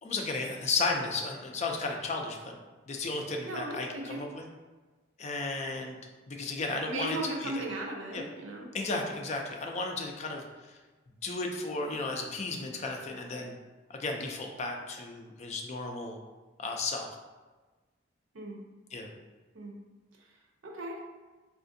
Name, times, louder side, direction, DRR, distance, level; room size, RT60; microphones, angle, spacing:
voice 1, 0.0-2.5 2.9-4.4 5.2-6.0 6.3-7.6 8.1-8.2 8.7-10.8 11.2-13.5 13.9-16.2 16.6-17.1 18.9-19.1, left 3 dB, 35° left, 2 dB, 0.4 m, -34 dB
voice 2, 3.4-4.2 6.9-8.7 18.3-18.6 19.5-19.8 20.6-21.0, right 2 dB, 85° right, 0 dB, 0.6 m, -37 dB
3.5 x 2.4 x 2.6 m, 1.3 s
head